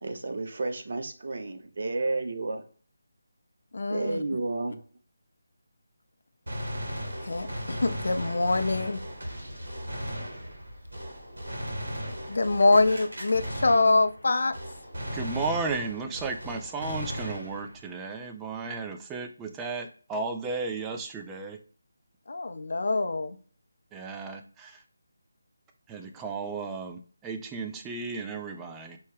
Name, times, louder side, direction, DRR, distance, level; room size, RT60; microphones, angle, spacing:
voice 1, 0.0-2.6 3.9-4.8 12.7-12.8, right 2 dB, 55° right, 6 dB, 0.6 m, -31 dB
voice 2, 3.7-4.2 7.2-9.0 12.3-14.5 22.3-23.4, left 3 dB, 65° left, 8 dB, 0.4 m, -24 dB
Gunshot gunfire, 6.5-14.3 14.5-17.9, equal, 70° right, 1.6 m, -37 dB
voice 3, 15.1-21.6 23.9-24.8 25.9-29.0, right 4 dB, 10° right, 4 dB, 0.4 m, -34 dB
4.6 x 2.2 x 3.2 m, 0.41 s
figure-of-eight pair, 160°, 0 cm